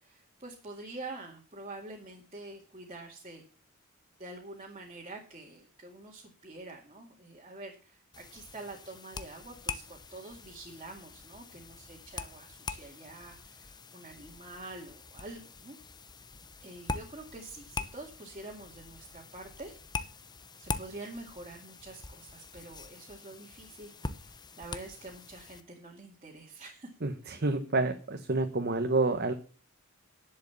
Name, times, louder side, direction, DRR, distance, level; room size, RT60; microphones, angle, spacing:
voice 1, 0.0-3.4 4.2-15.8 16.6-19.8 20.6-26.9, right 2 dB, 30° right, -2 dB, 2.1 m, -46 dB
sound 1, 8.1-25.6, left 4 dB, 20° left, 0.8 m, -43 dB
voice 2, 27.0-29.3, right 3 dB, 45° right, 7 dB, 1.0 m, -29 dB
11.0 x 7.8 x 7.0 m, 0.37 s
head